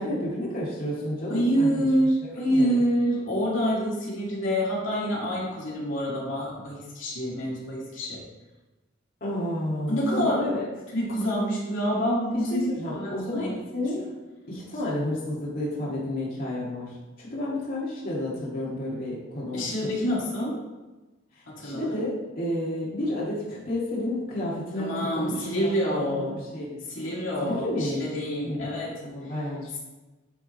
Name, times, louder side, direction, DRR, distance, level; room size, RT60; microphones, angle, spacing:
voice 1, 0.0-1.9 2.2-2.8 9.2-10.6 12.5-14.0 14.5-19.7 20.0-20.2 21.3-25.5 25.8-26.8 27.4-28.1 28.4-28.7 29.0-29.8, left 1 dB, 45° left, -7 dB, 1.8 m, -31 dB
voice 2, 1.3-8.2 9.9-10.5 10.9-13.5 19.5-20.6 21.5-22.0 24.8-26.3 26.9-28.9, equal, 75° left, -5 dB, 2.1 m, -27 dB
10.5 x 3.6 x 4.0 m, 1.1 s
head